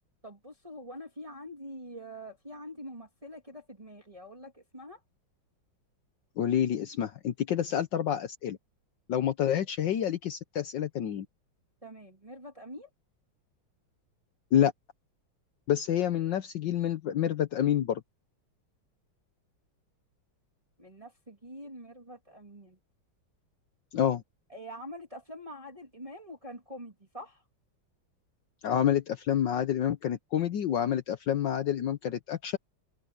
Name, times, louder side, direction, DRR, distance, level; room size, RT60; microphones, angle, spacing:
voice 1, 0.2-5.0 11.8-12.9 20.8-22.8 24.5-27.4, equal, 15° right, 2.9 m, -45 dB
voice 2, 6.4-8.6 9.1-11.3 14.5-14.7 15.7-18.0 23.9-24.2 28.6-32.6, left 10 dB, 65° left, 1.5 m, -28 dB
open air
omnidirectional pair, 2.2 m